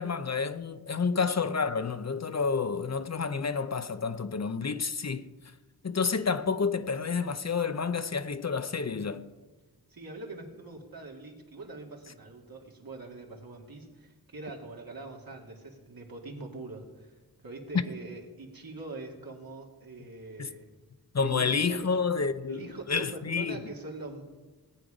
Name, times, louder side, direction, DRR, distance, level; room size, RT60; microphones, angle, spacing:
voice 1, 0.0-5.3 5.8-9.2 20.4-20.5 21.1-23.6, left 5 dB, 45° left, 0.7 m, -29 dB
voice 2, 8.9-9.2 9.9-17.2 17.4-20.7 21.2-21.9 22.5-24.2, right 3 dB, 70° right, 2.4 m, -43 dB
18.0 x 8.5 x 5.0 m
wide cardioid pair, 50°, 36 cm